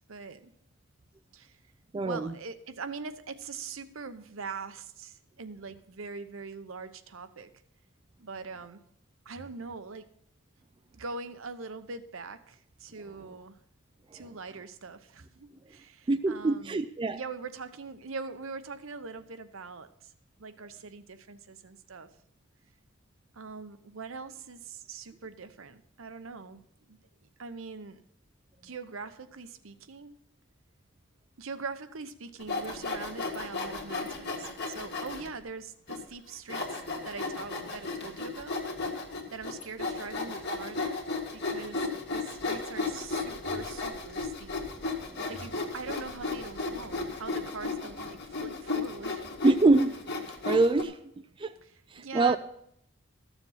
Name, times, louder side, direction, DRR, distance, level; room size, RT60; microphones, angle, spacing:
voice 1, 0.1-0.5 1.3-1.6 2.0-7.5 8.2-8.8 9.2-10.1 10.9-13.6 14.1-16.8 17.1-20.1 20.4-22.1 23.3-26.6 26.9-27.0 27.4-28.0 28.6-30.1 31.4-38.6 39.3-41.1 41.3-44.6 45.3-49.3 51.6-52.4, right 4 dB, 70° right, 0.8 m, -42 dB
voice 2, 1.9-2.3 16.1-17.2 45.1-45.2 49.4-50.0 50.5-51.0 51.4-51.5 51.9-52.4, right 3 dB, 25° right, 0.3 m, -24 dB
Sawing, 32.4-35.3 35.9-36.0 36.5-50.8, left 3 dB, 50° left, 2.0 m, -34 dB
13.5 x 7.2 x 5.6 m
head